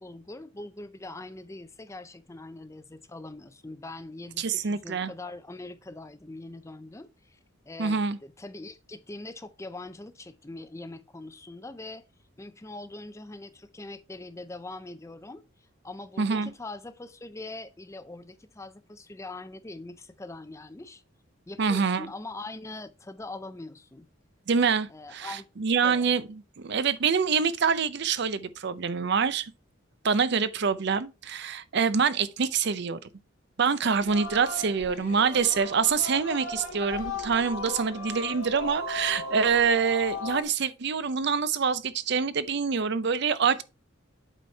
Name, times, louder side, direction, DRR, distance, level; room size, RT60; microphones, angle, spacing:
voice 1, 0.0-7.4 7.6-12.0 12.4-21.0 21.5-24.1 24.9-25.5 25.8-26.1, left 2 dB, 15° left, 0.5 m, -42 dB
voice 2, 4.4-5.1 7.8-8.2 16.2-16.5 21.6-22.1 24.5-26.2 26.6-29.5 30.0-33.0 33.6-43.6, right 6 dB, 55° right, 0.5 m, -26 dB
Singing, 34.0-40.4, left 3 dB, 85° left, 2.2 m, -36 dB
8.0 x 4.3 x 4.4 m
head